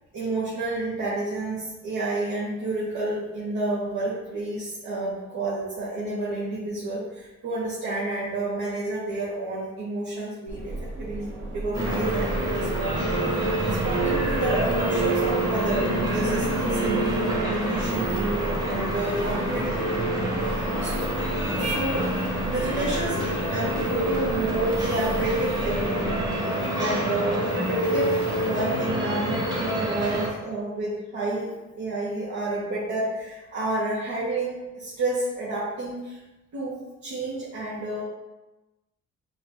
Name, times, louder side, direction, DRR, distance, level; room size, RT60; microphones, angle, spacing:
voice 1, 0.1-19.7 20.4-21.0 21.6-22.1 22.5-23.2 23.5-25.9 26.7-31.5 31.7-36.2 36.5-38.0, right 2 dB, 70° right, -8 dB, 1.1 m, -30 dB
sound 1, 10.5-26.4, right 2 dB, 40° right, 0.9 m, -36 dB
sound 2, 11.7-30.3, right 1 dB, 15° right, 1.2 m, -26 dB
5.3 x 2.5 x 2.8 m, 1.0 s
cardioid pair, 90°, 30 cm